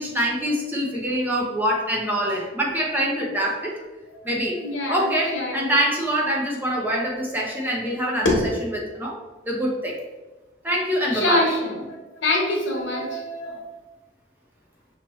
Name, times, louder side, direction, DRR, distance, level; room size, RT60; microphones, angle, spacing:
voice 1, 0.0-3.8 4.2-4.6 4.9-9.2 9.5-10.0 10.6-11.5, equal, 10° right, -3 dB, 0.7 m, -25 dB
voice 2, 4.6-5.7 8.2-8.4 11.1-13.6, left 1 dB, 90° left, 0 dB, 1.1 m, -25 dB
5.7 x 3.0 x 3.0 m, 1.1 s
head